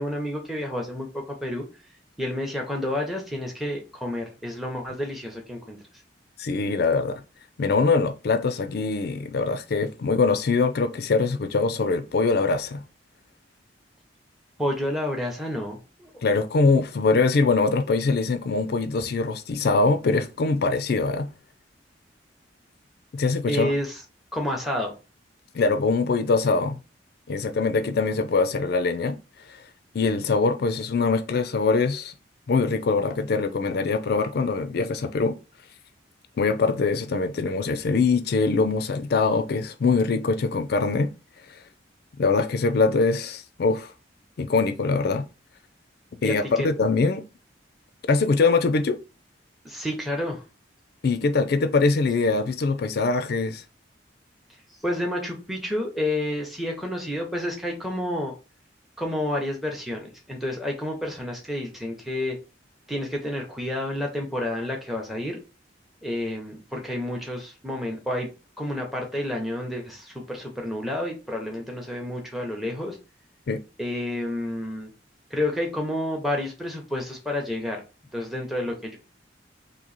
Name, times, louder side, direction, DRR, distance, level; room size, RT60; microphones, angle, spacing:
voice 1, 0.0-1.6 2.2-5.8 14.6-16.2 23.5-24.0 24.3-25.0 46.2-46.7 49.6-50.4 54.8-58.3 59.0-62.4 62.9-65.4 66.0-73.0 73.8-74.9 75.3-77.8 78.1-79.0, left 1 dB, ahead, 0.7 m, -30 dB
voice 2, 6.4-7.2 7.6-12.8 16.2-21.3 23.1-23.7 25.5-26.8 27.3-29.2 29.5-29.6 29.9-32.1 32.5-35.4 36.4-41.1 42.2-43.9 44.4-45.3 46.2-47.2 48.0-49.0 51.0-53.6 73.5-73.6, left 4 dB, 55° left, 0.4 m, -23 dB
3.0 x 2.7 x 3.9 m
head